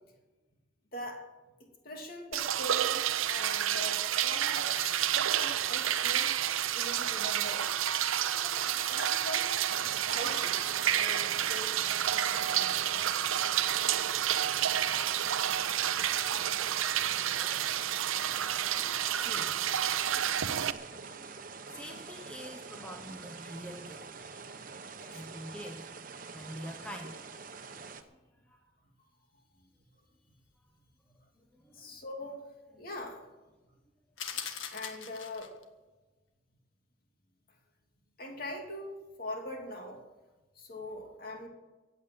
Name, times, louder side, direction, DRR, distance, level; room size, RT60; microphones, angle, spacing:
voice 1, 0.9-1.3 1.6-6.3 6.7-7.7 8.4-9.5 9.8-10.6 10.9-11.8 12.1-12.9 19.9-20.0 21.0-21.3 25.0-25.2 31.1-31.2 31.7-33.2 34.7-35.6 38.2-40.0 40.5-41.5, left 1 dB, 45° left, 2 dB, 3.0 m, -43 dB
sound 1, 2.3-20.7, right 10 dB, 85° right, 0.7 m, -30 dB
sound 2, 9.7-28.0, right 4 dB, 45° right, 1.1 m, -46 dB
voice 2, 19.1-19.6 21.7-24.1 25.1-25.9 26.3-27.2 28.5-28.6 31.4-31.9 32.8-32.9 34.3-34.4, equal, 5° left, 3 dB, 1.1 m, -45 dB
sound 3, 34.2-35.6, left 7 dB, 75° left, 1.6 m, -40 dB
16.0 x 8.9 x 8.8 m, 1.2 s
head